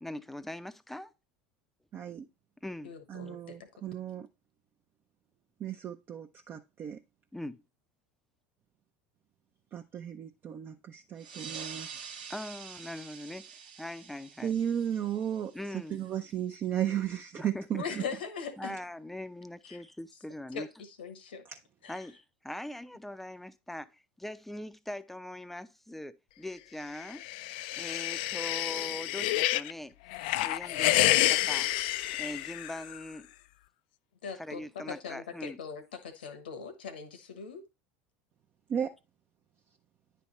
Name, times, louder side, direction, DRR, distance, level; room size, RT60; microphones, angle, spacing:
voice 1, 0.0-1.1 2.6-2.9 7.3-7.6 12.3-14.6 15.5-16.1 17.4-17.8 18.6-20.7 21.9-27.3 27.8-30.0 30.4-31.7 32.2-33.3 34.3-35.6, left 1 dB, 5° left, 0.5 m, -41 dB
voice 2, 1.9-2.3 3.1-4.3 5.6-7.0 9.7-11.9 14.4-15.5 15.9-17.8 38.7-38.9, right 9 dB, 40° right, 0.6 m, -34 dB
voice 3, 2.8-3.4 17.8-18.7 19.6-19.8 20.5-20.6 21.0-21.4 21.8-21.9 34.2-37.6, left 6 dB, 90° left, 1.2 m, -40 dB
sound 1, 11.2-16.2, right 7 dB, 85° right, 1.0 m, -46 dB
sound 2, 27.0-29.7 30.1-33.0, left 15 dB, 70° left, 0.3 m, -29 dB
9.5 x 3.5 x 4.2 m
hypercardioid pair, 90°, 5 cm